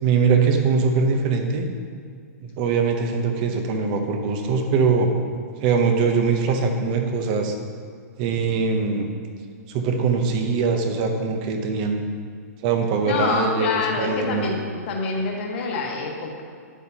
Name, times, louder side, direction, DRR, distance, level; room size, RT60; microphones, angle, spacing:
voice 1, 0.0-1.7 2.4-5.1 5.6-7.6 8.2-9.1 9.7-12.1 12.6-14.5, right 5 dB, 30° right, 5 dB, 0.8 m, -22 dB
voice 2, 13.0-14.6 14.9-16.4, left 4 dB, 40° left, 0 dB, 1.4 m, -26 dB
9.2 x 8.3 x 2.9 m, 2.1 s
hypercardioid pair, 165°, 9 cm